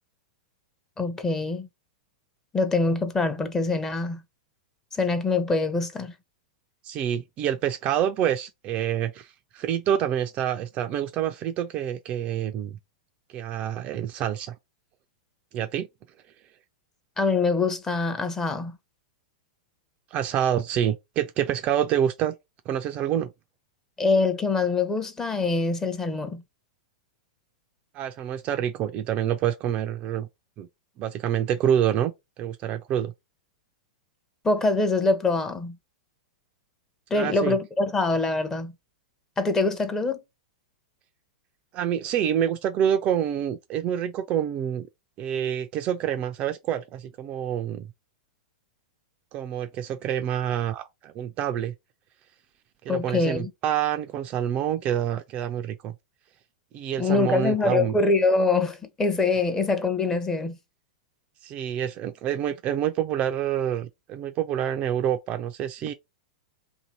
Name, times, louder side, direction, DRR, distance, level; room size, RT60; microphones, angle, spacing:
voice 1, 1.0-1.7 2.5-4.2 4.9-6.1 17.2-18.8 24.0-26.4 34.4-35.8 37.1-38.7 39.4-40.2 52.9-53.5 57.0-60.6, left 3 dB, 15° left, 0.7 m, -24 dB
voice 2, 6.8-9.3 9.5-12.8 13.3-14.5 15.5-15.9 20.1-22.4 22.7-23.3 27.9-30.3 30.6-30.7 31.0-32.1 32.4-33.1 37.1-37.6 41.7-44.9 45.2-47.9 49.3-51.7 52.8-55.9 56.7-58.0 61.4-65.9, right 10 dB, 35° right, 0.4 m, -27 dB
2.8 x 2.6 x 4.1 m
figure-of-eight pair, 100°, 4 cm